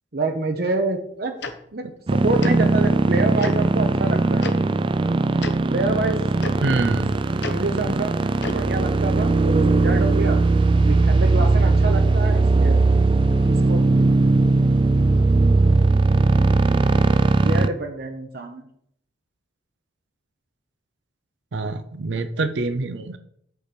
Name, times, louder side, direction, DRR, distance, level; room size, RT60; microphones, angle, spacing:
voice 1, 0.1-1.3 1.7-4.6 5.7-6.2 7.4-8.2 8.4-10.4 10.8-12.8 13.5-13.9 17.2-18.7, right 2 dB, 55° right, 4 dB, 0.9 m, -27 dB
Tick-tock, 1.4-1.5 2.4-2.5 3.4-3.5 4.4-4.5 5.4-5.5 6.4-6.5 7.4-7.5 8.4-8.6, left 3 dB, 70° left, 1.0 m, -30 dB
sound 1, 2.1-17.7, right 3 dB, 25° right, 0.3 m, -19 dB
voice 2, 6.6-7.2 21.5-23.2, right 3 dB, 80° right, 11 dB, 0.6 m, -25 dB
8.2 x 4.5 x 6.8 m, 0.68 s
head